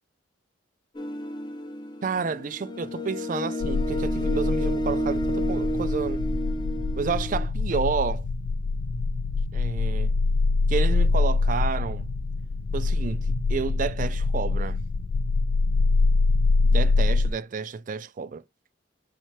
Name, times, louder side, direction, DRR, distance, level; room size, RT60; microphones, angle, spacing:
sound 1, 0.9-7.5, equal, 20° left, 0.5 m, -30 dB
voice 1, 2.0-6.2 7.0-8.2 9.5-10.1 10.7-12.1 12.7-14.8 16.7-18.4, right 5 dB, 40° right, 0.3 m, -30 dB
sound 2, 3.6-17.3, left 3 dB, 85° left, 0.4 m, -24 dB
4.3 x 3.6 x 3.1 m
head